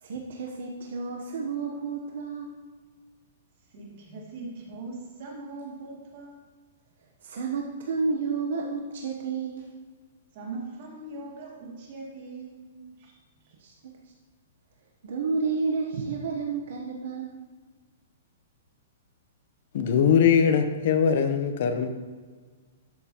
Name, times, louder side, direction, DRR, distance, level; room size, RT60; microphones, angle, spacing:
voice 1, 0.0-2.5 7.2-9.7 13.6-13.9 15.0-17.4, right 4 dB, 65° right, 0 dB, 1.0 m, -31 dB
voice 2, 3.7-6.4 10.3-13.1 13.4-13.5, right 3 dB, 45° right, -3 dB, 2.6 m, -41 dB
voice 3, 19.7-21.9, left 7 dB, 50° left, 7 dB, 0.8 m, -21 dB
12.5 x 6.6 x 3.0 m, 1.5 s
hypercardioid pair, 165°, 0 cm